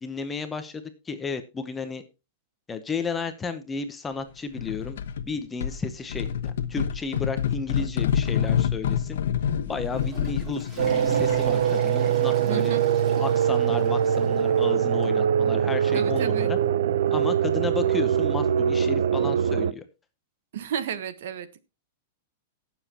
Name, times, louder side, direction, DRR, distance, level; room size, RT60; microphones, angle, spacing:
voice 1, 0.0-2.0 2.7-5.0 5.2-9.2 9.7-12.8 13.2-16.6 17.1-19.8, left 4 dB, 10° left, 9 dB, 0.8 m, -33 dB
sound 1, 4.6-5.3 5.6-11.6, left 8 dB, 75° left, 1.0 m, -27 dB
Water / Toilet flush, 9.7-14.7 15.0-15.1 15.9-16.0 17.2-17.3, right 2 dB, 10° right, 2.7 m, -42 dB
sound 2, 10.8-19.7, right 8 dB, 80° right, 0.7 m, -23 dB
voice 2, 12.5-12.8 15.9-16.5 20.5-21.6, right 9 dB, 60° right, 13 dB, 1.2 m, -32 dB
19.0 x 7.2 x 2.9 m, 0.28 s
supercardioid pair, 175°, 0 cm